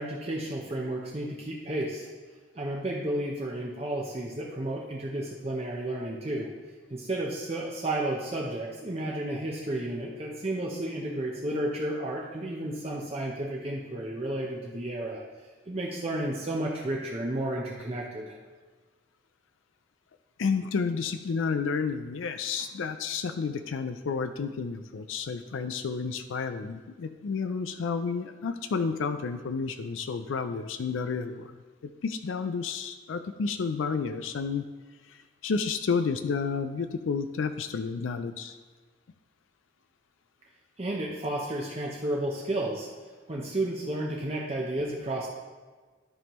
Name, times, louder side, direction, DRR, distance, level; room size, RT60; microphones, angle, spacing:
voice 1, 0.0-2.1 2.6-6.5 6.9-15.2 15.7-18.4 40.8-42.9 43.3-45.3, right 1 dB, 30° right, -2 dB, 0.7 m, -32 dB
voice 2, 20.4-31.6 32.0-34.6 35.1-38.6, left 5 dB, 85° left, 9 dB, 0.4 m, -31 dB
13.0 x 5.3 x 3.0 m, 1.4 s
head